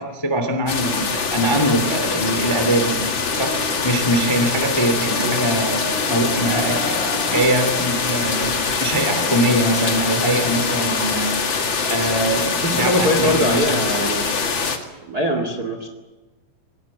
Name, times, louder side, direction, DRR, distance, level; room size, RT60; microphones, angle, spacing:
voice 1, 0.0-3.0 3.3-5.8 6.1-11.4 11.9-13.8, right 1 dB, 40° left, 7 dB, 0.3 m, -22 dB
sound 1, 0.7-14.8, left 5 dB, 65° left, 1.1 m, -23 dB
sound 2, 1.9-7.4, left 2 dB, 85° left, 8.6 m, -34 dB
voice 2, 12.6-14.3 15.0-15.9, equal, 70° right, 5 dB, 0.8 m, -22 dB
26.5 x 19.0 x 7.4 m, 1.2 s
omnidirectional pair, 5.8 m